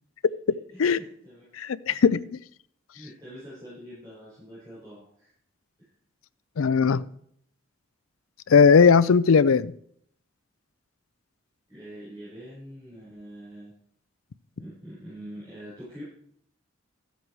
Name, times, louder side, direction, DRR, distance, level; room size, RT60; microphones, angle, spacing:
voice 1, 0.7-1.4 1.9-2.0 2.9-5.3 5.8-5.9 11.7-13.7 14.6-16.0, equal, 20° right, -10 dB, 5.2 m, -44 dB
voice 2, 1.6-2.2 6.6-7.0 8.5-9.7, left 5 dB, 75° left, 17 dB, 0.4 m, -18 dB
13.0 x 8.0 x 4.7 m, 0.64 s
head